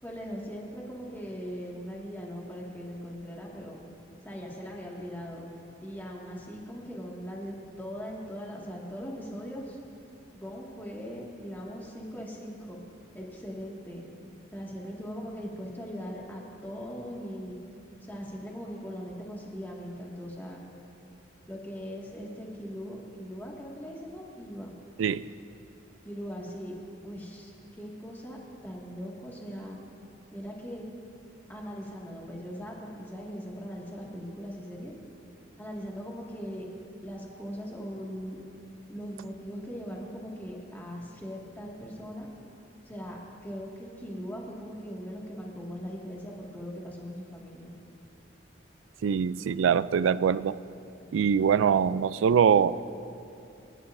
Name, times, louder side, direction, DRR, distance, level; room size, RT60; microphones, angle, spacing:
voice 1, 0.0-3.8 4.2-5.4 5.8-9.8 10.3-12.8 13.1-14.1 14.5-17.6 18.1-20.6 21.5-24.7 26.1-26.8 27.0-27.5 27.8-29.8 30.3-30.8 31.5-34.9 35.6-36.7 37.0-38.4 38.9-42.3 42.9-47.7, equal, 10° left, -3 dB, 1.9 m, -40 dB
voice 2, 49.0-50.6 51.1-52.8, right 7 dB, 85° right, 17 dB, 0.3 m, -23 dB
29.5 x 11.0 x 2.6 m, 2.7 s
head